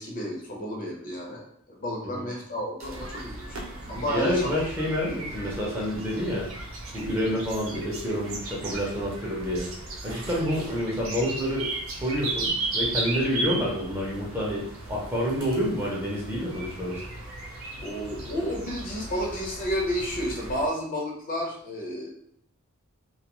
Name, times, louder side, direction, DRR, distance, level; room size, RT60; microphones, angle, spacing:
voice 1, 0.0-3.6 3.9-4.5 5.1-5.3 17.8-22.1, equal, 40° left, -1 dB, 0.6 m, -31 dB
sound 1, 2.8-20.7, right 2 dB, 75° right, 0.6 m, -36 dB
voice 2, 4.0-6.5 6.9-9.7 10.0-11.7 12.0-17.0, equal, 10° right, -4 dB, 0.6 m, -28 dB
2.3 x 2.2 x 2.9 m, 0.67 s
head